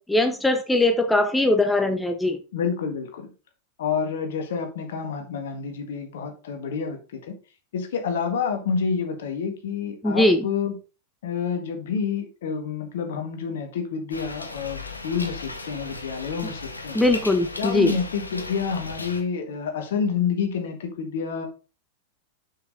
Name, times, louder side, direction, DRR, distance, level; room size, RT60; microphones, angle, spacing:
voice 1, 0.0-2.4 10.0-10.4 16.9-17.9, left 2 dB, 5° left, 7 dB, 0.7 m, -21 dB
voice 2, 2.5-3.3 3.8-7.3 7.7-10.8 11.2-17.0 17.6-21.5, left 6 dB, 60° left, 5 dB, 1.7 m, -28 dB
sound 1, 14.1-19.2, left 3 dB, 80° left, 1.0 m, -36 dB
6.6 x 6.0 x 3.8 m, 0.32 s
figure-of-eight pair, 90°, 0 cm